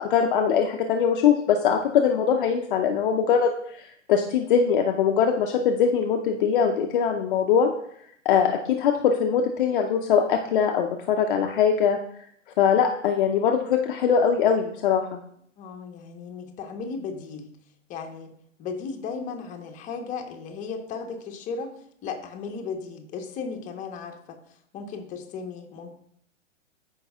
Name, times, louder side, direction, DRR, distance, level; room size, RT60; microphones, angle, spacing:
voice 1, 0.0-3.5 4.1-7.7 8.2-12.0 12.6-15.2, left 7 dB, 45° left, 3 dB, 0.7 m, -22 dB
voice 2, 15.6-17.5 17.9-18.3 18.6-21.7 22.0-24.4 24.7-25.9, left 5 dB, 20° left, 4 dB, 1.0 m, -35 dB
14.0 x 5.4 x 2.4 m, 0.68 s
hypercardioid pair, 120°, 38 cm